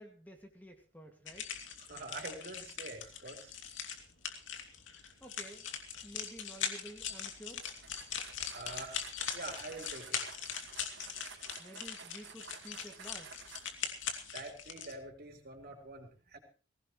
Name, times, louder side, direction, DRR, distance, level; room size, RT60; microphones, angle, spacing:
voice 1, 0.0-1.5 5.2-5.7 6.0-7.7 11.6-13.5, right 1 dB, 10° left, 3 dB, 2.1 m, -51 dB
sound 1, 1.3-14.9, left 7 dB, 80° left, 2.7 m, -41 dB
voice 2, 1.9-3.5 8.5-9.0 9.3-10.2 14.3-16.4, right 2 dB, 50° right, 3 dB, 4.1 m, -45 dB
sound 2, 7.6-13.9, right 6 dB, 65° right, 3.1 m, -53 dB
20.5 x 17.5 x 3.2 m, 0.38 s
head